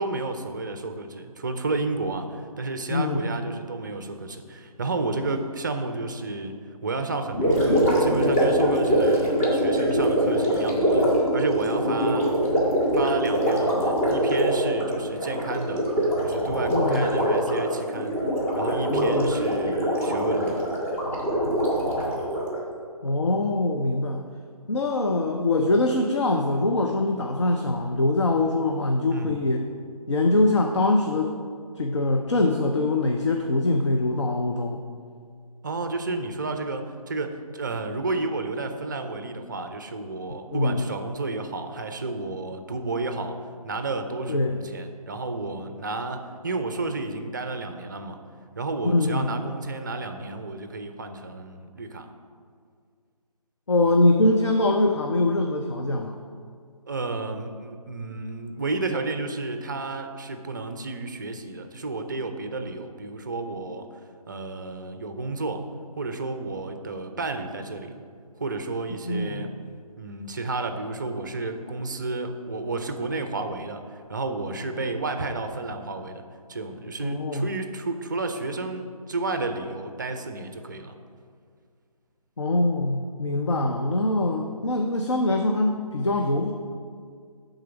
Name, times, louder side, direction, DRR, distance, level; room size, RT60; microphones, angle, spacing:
voice 1, 0.0-6.6 6.8-12.4 12.9-15.9 16.2-18.2 18.5-20.7 29.1-29.4 35.6-43.4 43.6-48.2 48.6-52.1 56.9-63.9 64.3-65.7 66.0-68.0 68.4-69.5 70.0-73.8 74.1-76.2 76.5-80.9, right 3 dB, 30° right, 7 dB, 0.5 m, -31 dB
voice 2, 2.9-3.3 11.9-12.1 16.7-17.1 18.9-19.3 23.0-24.2 24.7-29.7 30.1-31.3 31.8-34.8 40.5-40.9 44.3-44.6 48.8-49.4 53.7-56.2 69.0-69.5 74.7-74.8 77.0-77.5 82.4-86.5, left 2 dB, 50° left, 3 dB, 0.5 m, -23 dB
Gurgling, 7.3-22.6, equal, 25° left, 1.3 m, -23 dB
9.3 x 3.9 x 5.9 m, 2.1 s
figure-of-eight pair, 150°, 20 cm